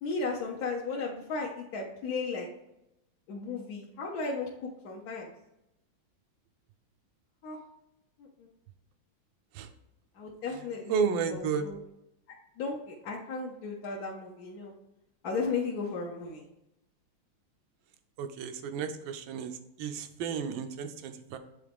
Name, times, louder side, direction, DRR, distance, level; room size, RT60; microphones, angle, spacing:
voice 1, 0.0-2.5 3.3-5.3 7.4-7.6 8.2-8.5 10.2-11.8 12.6-14.7 15.2-16.4, left 4 dB, 60° left, -2 dB, 1.1 m, -35 dB
voice 2, 10.9-11.7 18.2-21.4, right 6 dB, 75° right, 8 dB, 1.4 m, -32 dB
8.5 x 3.8 x 3.5 m, 0.86 s
omnidirectional pair, 2.3 m